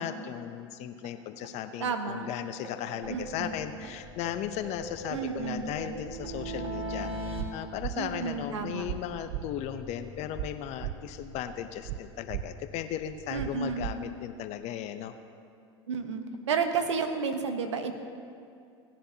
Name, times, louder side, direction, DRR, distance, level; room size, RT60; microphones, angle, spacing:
voice 1, 0.0-15.2, left 10 dB, 50° left, 10 dB, 0.7 m, -36 dB
sound 1, 1.0-1.1 1.4-1.5 1.8-1.9 2.2-2.3 2.6-3.9 4.2-7.4, right 1 dB, 40° right, 1.7 m, -39 dB
voice 2, 1.8-2.2 3.1-3.5 5.1-5.7 8.0-8.9 13.3-13.9 15.9-17.9, right 5 dB, 85° right, 7 dB, 1.1 m, -31 dB
sound 2, 3.0-13.8, left 1 dB, ahead, 1.8 m, -50 dB
sound 3, 7.4-7.5 7.8-7.9 8.9-9.0 9.3-9.4 10.4-10.5 10.8-10.9 11.9-12.0 12.3-12.4 13.4-13.5 13.8-13.9, right 15 dB, 60° right, 0.4 m, -34 dB
18.0 x 10.0 x 2.8 m, 2.4 s
hypercardioid pair, 90°, 15 cm